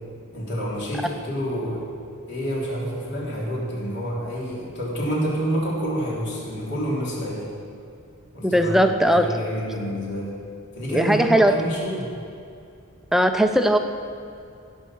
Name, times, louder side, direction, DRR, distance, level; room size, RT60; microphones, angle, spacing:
voice 1, 0.3-1.9 2.3-7.5 8.3-10.3 10.7-12.1, equal, 55° left, -5 dB, 3.4 m, -28 dB
voice 2, 8.4-9.3 10.9-11.5 13.1-13.8, right 1 dB, ahead, 6 dB, 0.5 m, -18 dB
16.0 x 5.5 x 6.3 m, 2.5 s
head